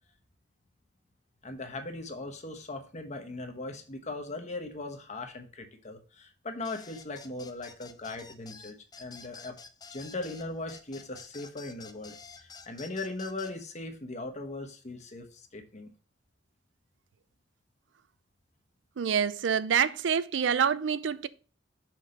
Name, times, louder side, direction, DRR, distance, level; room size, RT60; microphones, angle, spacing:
voice 1, 1.4-9.6 9.9-15.9, left 2 dB, 40° left, 1.1 m, -39 dB
sound 1, 6.6-13.5, left 5 dB, 20° left, 0.6 m, -49 dB
voice 2, 19.0-21.3, right 7 dB, 90° right, 0.4 m, -26 dB
6.1 x 4.4 x 5.3 m
head